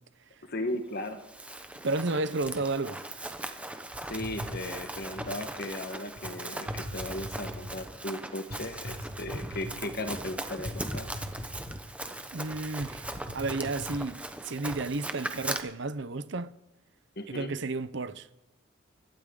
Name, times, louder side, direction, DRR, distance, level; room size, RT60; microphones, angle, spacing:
voice 1, 0.5-1.2 4.1-11.1 17.2-17.5, left 1 dB, 50° left, 1.4 m, -36 dB
Run, 1.0-15.6, right 1 dB, 5° right, 0.9 m, -39 dB
voice 2, 1.8-3.0 12.3-13.1 13.3-16.5 17.3-18.3, right 3 dB, 60° right, 0.8 m, -32 dB
sound 1, 3.9-5.4 6.2-6.3 6.7-7.8 8.5-10.2 10.6-12.1 12.4-12.5 12.8-14.0, equal, 80° right, 2.2 m, -41 dB
24.5 x 11.5 x 3.9 m
head